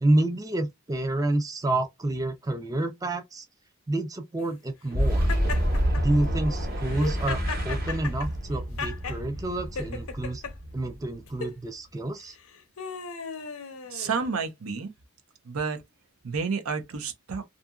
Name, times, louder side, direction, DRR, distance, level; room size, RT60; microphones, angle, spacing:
voice 1, 0.0-3.4 3.9-5.3 6.0-10.4 10.7-12.4, right 1 dB, 15° right, 0.4 m, -28 dB
Boom, 4.9-11.5, equal, 45° right, 1.0 m, -28 dB
Laughter, 5.3-6.0 6.8-9.2 9.8-10.5 11.3-11.6 12.3-14.5, left 5 dB, 90° left, 0.7 m, -36 dB
voice 2, 13.9-14.9 15.4-15.8 16.2-17.4, right 5 dB, 85° right, 0.6 m, -30 dB
2.7 x 2.5 x 2.3 m
head